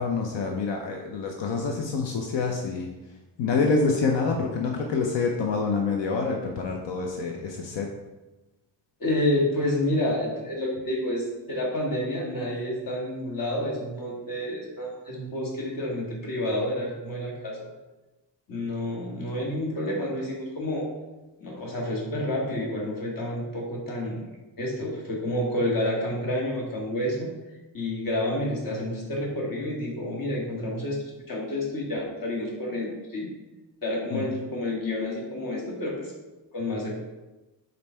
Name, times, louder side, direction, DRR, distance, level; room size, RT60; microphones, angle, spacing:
voice 1, 0.0-7.9 34.1-34.3, left 4 dB, 90° left, 1 dB, 0.8 m, -27 dB
voice 2, 9.0-17.7 18.5-20.9 21.4-24.3 24.6-27.3 27.7-31.0 31.3-33.3 33.8-36.1 36.5-36.9, left 1 dB, 50° left, -2 dB, 1.7 m, -29 dB
5.4 x 3.9 x 4.4 m, 1.1 s
wide cardioid pair, 145°, 43 cm